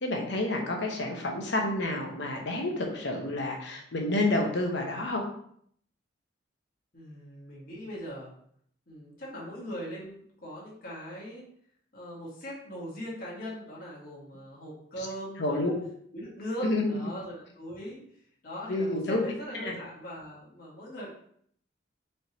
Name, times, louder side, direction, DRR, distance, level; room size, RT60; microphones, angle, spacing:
voice 1, 0.0-5.2 15.4-15.7 16.6-17.1 18.7-19.3 19.6-19.8, left 2 dB, 60° left, 2 dB, 0.8 m, -29 dB
voice 2, 6.9-8.3 8.9-11.4 11.9-15.7 16.1-21.1, equal, 45° left, -5 dB, 1.3 m, -40 dB
4.3 x 3.3 x 2.8 m, 0.65 s
head